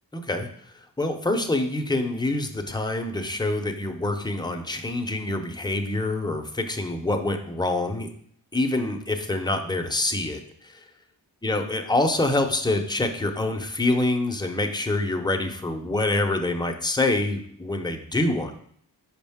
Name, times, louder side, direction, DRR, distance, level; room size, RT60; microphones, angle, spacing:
voice 1, 0.1-0.5 1.0-8.1 8.5-10.8 11.4-18.6, left 2 dB, 10° left, 5 dB, 0.7 m, -26 dB
5.4 x 4.9 x 3.6 m, 0.62 s
wide cardioid pair, 70°, 43 cm